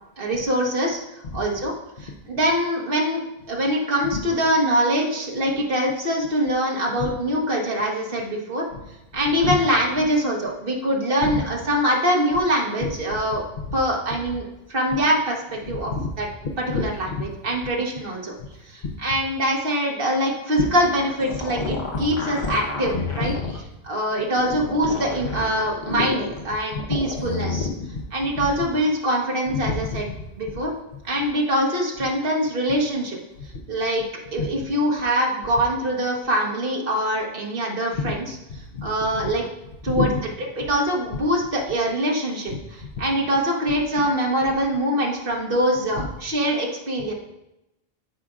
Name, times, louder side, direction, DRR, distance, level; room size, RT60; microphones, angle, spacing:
voice 1, 0.2-1.0 1.3-1.7 2.0-3.2 3.5-8.6 9.1-13.4 13.7-15.9 16.2-16.3 16.7-18.3 18.7-23.3 23.8-27.7 28.1-30.1 30.4-30.7 31.0-33.2 33.7-34.1 34.3-38.2 38.8-39.5 39.8-40.1 40.6-42.5 43.0-47.1, equal, 60° right, -1 dB, 1.4 m, -23 dB
voice 2, 12.8-13.2 13.6-13.8 15.7-16.1 16.4-16.8 17.1-17.2 18.4-18.5 18.8-18.9 23.4-23.5 25.2-25.4 26.7-26.8 27.8-28.0 28.4-28.5 29.5-30.0 30.5-30.6 34.4-34.5 37.9-38.1 38.5-39.3 39.9-40.1 42.5-42.6 43.0-43.1 44.0-44.1 46.0-46.1, left 4 dB, 60° left, 3 dB, 1.0 m, -29 dB
sound 1, 20.8-23.6 24.3-26.4 26.8-27.7, left 3 dB, 85° left, 1.2 m, -29 dB
12.5 x 5.1 x 2.4 m, 0.90 s
omnidirectional pair, 1.0 m